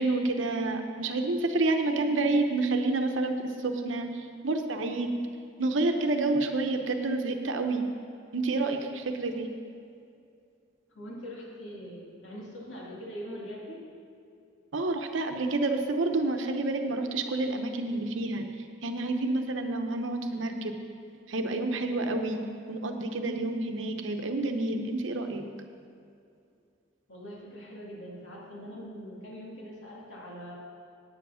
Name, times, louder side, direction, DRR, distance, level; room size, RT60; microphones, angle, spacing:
voice 1, 0.0-5.1 5.6-7.9 8.3-9.5 14.7-18.5 18.8-20.7 21.3-22.4 22.7-25.4, right 2 dB, 85° right, 5 dB, 0.9 m, -29 dB
voice 2, 10.9-13.8 27.1-30.5, equal, 75° left, -4 dB, 2.4 m, -42 dB
9.5 x 7.8 x 5.7 m, 2.5 s
head